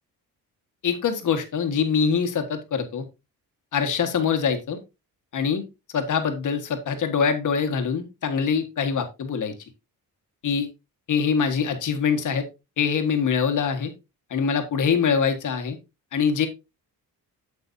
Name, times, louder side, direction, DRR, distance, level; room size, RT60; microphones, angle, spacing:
voice 1, 0.8-3.0 3.7-4.8 5.3-5.6 5.9-9.5 10.4-10.7 11.1-12.4 12.8-13.9 14.3-15.8 16.1-16.5, left 6 dB, 55° left, 7 dB, 1.6 m, -24 dB
8.3 x 7.9 x 2.7 m, 0.26 s
wide cardioid pair, 155°, 36 cm